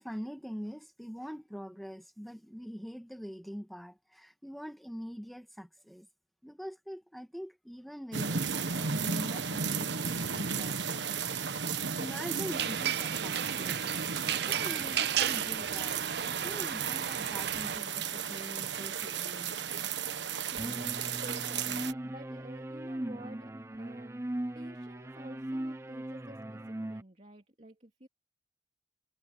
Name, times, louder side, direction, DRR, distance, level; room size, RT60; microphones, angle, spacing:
voice 1, 0.0-6.1 6.4-13.8 14.3-19.5, equal, ahead, 1.7 m, -44 dB
sound 1, 8.1-21.9, right 6 dB, 75° right, 1.3 m, -34 dB
sound 2, 12.5-17.8, right 9 dB, 60° right, 0.6 m, -34 dB
voice 2, 20.5-24.2 24.5-28.1, right 1 dB, 40° right, 2.7 m, -51 dB
sound 3, 20.6-27.0, right 1 dB, 15° right, 0.6 m, -39 dB
head